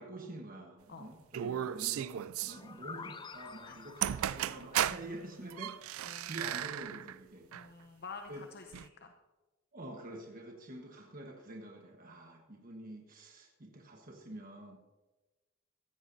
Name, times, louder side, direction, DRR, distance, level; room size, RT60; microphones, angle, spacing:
voice 1, 0.0-7.5 8.3-8.4 9.7-14.8, right 1 dB, 45° right, 1 dB, 1.3 m, -47 dB
sound 1, 1.3-2.6 3.7-3.8 4.0-5.1 5.5-7.2 7.5-7.7 8.7-8.9, right 11 dB, 75° right, 0.3 m, -35 dB
sound 2, 2.5-6.2, left 5 dB, 20° left, 0.4 m, -50 dB
voice 2, 6.0-6.4 7.5-9.1, left 4 dB, 50° left, 5 dB, 0.8 m, -49 dB
16.0 x 13.5 x 2.7 m, 1.2 s
head